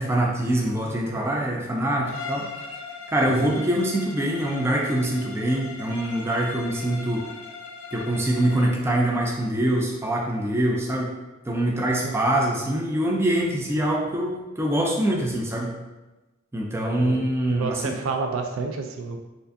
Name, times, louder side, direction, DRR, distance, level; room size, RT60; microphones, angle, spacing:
voice 1, 0.0-2.5 3.1-7.2 7.9-11.2 11.5-15.7 16.5-17.9, right 1 dB, 10° right, -1 dB, 0.4 m, -24 dB
Bowed string instrument, 2.0-8.8, left 5 dB, 80° left, 0.4 m, -39 dB
voice 2, 11.9-12.2 17.0-19.2, right 4 dB, 80° right, 5 dB, 0.4 m, -30 dB
4.4 x 2.6 x 2.6 m, 1.1 s
head